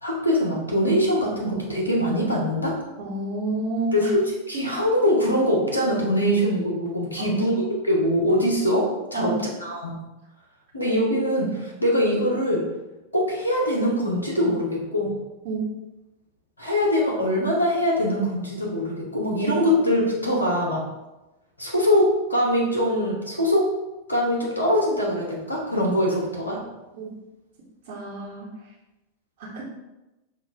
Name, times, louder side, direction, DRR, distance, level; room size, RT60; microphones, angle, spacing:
voice 1, 0.0-2.8 3.9-10.0 10.7-12.7 13.1-15.2 16.6-20.8 21.6-23.7 24.1-26.6, equal, 80° left, -2 dB, 1.0 m, -23 dB
voice 2, 3.0-4.1 7.2-7.4 9.1-9.4 15.4-15.6 26.9-27.1 27.9-28.5 29.4-29.6, right 2 dB, 50° right, -6 dB, 1.0 m, -29 dB
5.9 x 2.5 x 3.5 m, 1.0 s
figure-of-eight pair, 90°, 0 cm